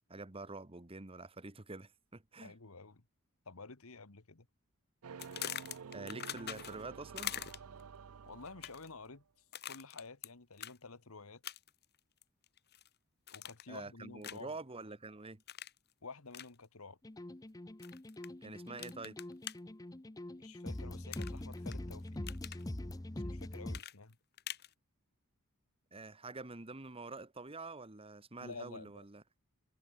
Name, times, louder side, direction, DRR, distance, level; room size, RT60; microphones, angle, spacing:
voice 1, 0.1-2.5 5.9-7.3 13.7-15.4 18.4-19.2 25.9-29.2, right 3 dB, 25° right, 1.3 m, -47 dB
voice 2, 2.4-3.0 3.4-4.5 8.3-9.2 9.7-11.4 13.3-14.5 16.0-17.0 20.4-22.3 23.2-24.2 28.4-29.0, left 4 dB, 70° left, 1.6 m, -51 dB
sound 1, 5.0-9.2, right 6 dB, 80° right, 0.6 m, -50 dB
sound 2, 5.2-6.9 7.2-7.8 8.5-8.9 9.5-10.3 10.6-10.8 11.4-11.8 12.2-12.9 13.3-13.8 14.2-14.5 15.5-15.8 16.3-16.5 17.8-18.3 18.8-19.5 21.1-21.8 22.1-22.6 23.7-24.7, left 11 dB, 50° left, 1.7 m, -43 dB
sound 3, 17.0-23.8, left 1 dB, 15° left, 0.7 m, -43 dB
head